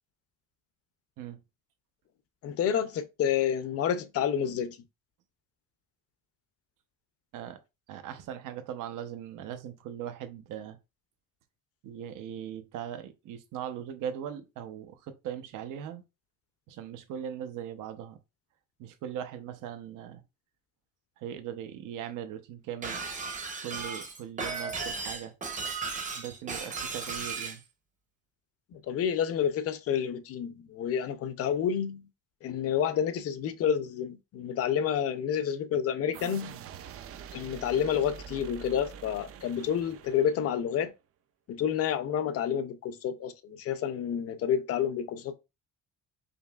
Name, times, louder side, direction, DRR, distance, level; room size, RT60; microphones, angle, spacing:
voice 1, 2.4-4.8 28.7-32.0 32.4-36.6 37.3-40.9 41.5-45.3, left 8 dB, 50° left, 0.5 m, -29 dB
voice 2, 7.9-10.8 11.8-16.0 16.7-18.2 18.8-20.2 21.2-23.0 23.6-25.3 26.1-27.6, right 9 dB, 80° right, 0.8 m, -39 dB
Shatter, 22.8-27.6, right 4 dB, 25° right, 0.7 m, -35 dB
sound 1, 36.1-40.8, right 8 dB, 45° right, 0.4 m, -45 dB
5.3 x 2.8 x 2.3 m
cardioid pair, 165°, 31 cm